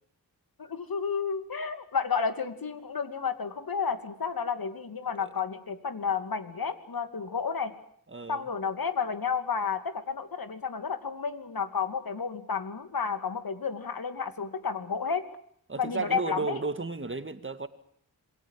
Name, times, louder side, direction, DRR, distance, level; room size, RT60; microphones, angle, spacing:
voice 1, 0.6-7.7 8.3-15.2 15.8-16.6, left 6 dB, 70° left, 9 dB, 2.8 m, -31 dB
voice 2, 8.1-8.5 15.7-17.7, right 3 dB, 35° right, 10 dB, 2.1 m, -33 dB
27.5 x 22.0 x 7.4 m, 0.64 s
wide cardioid pair, 85°, 37 cm